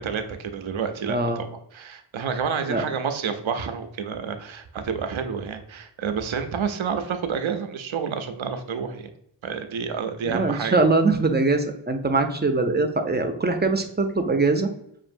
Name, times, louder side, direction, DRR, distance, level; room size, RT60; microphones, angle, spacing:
voice 1, 0.0-1.5 1.7-9.1 9.4-10.7, right 6 dB, 90° right, 7 dB, 0.6 m, -29 dB
voice 2, 1.1-1.5 2.7-2.8 10.3-14.7, right 3 dB, 20° right, 5 dB, 0.6 m, -22 dB
5.8 x 2.5 x 2.6 m, 0.74 s
wide cardioid pair, 70°, 46 cm